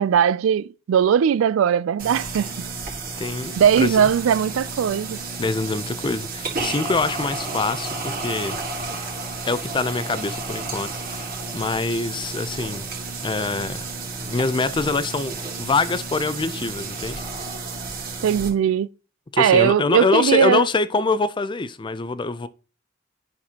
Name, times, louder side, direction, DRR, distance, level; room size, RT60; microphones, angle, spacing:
voice 1, 0.0-2.7 3.6-5.2 18.2-18.9 19.4-20.7, right 8 dB, 75° right, 0.3 m, -19 dB
sound 1, 2.0-18.5, right 3 dB, 45° right, 1.8 m, -32 dB
voice 2, 3.2-4.0 5.4-8.6 9.4-12.8 13.2-13.9 14.2-17.2 19.3-22.5, left 3 dB, 25° left, 0.4 m, -25 dB
9.8 x 6.0 x 2.8 m
head